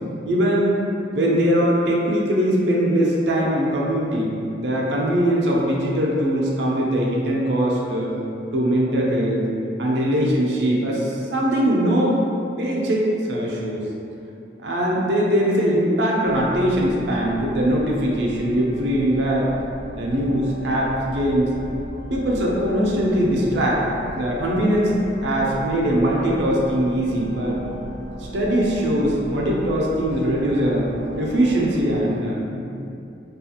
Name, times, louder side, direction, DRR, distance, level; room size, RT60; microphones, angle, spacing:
voice 1, 0.3-0.8 1.1-8.1 8.5-9.5 9.8-12.2 12.6-13.8 14.6-19.5 20.0-21.5 22.1-23.9 24.1-27.6 28.2-30.9 31.2-32.8, equal, 70° right, -3 dB, 0.4 m, -21 dB
sound 1, 16.2-32.0, equal, 45° left, 0.4 m, -37 dB
2.8 x 2.3 x 2.7 m, 2.7 s
head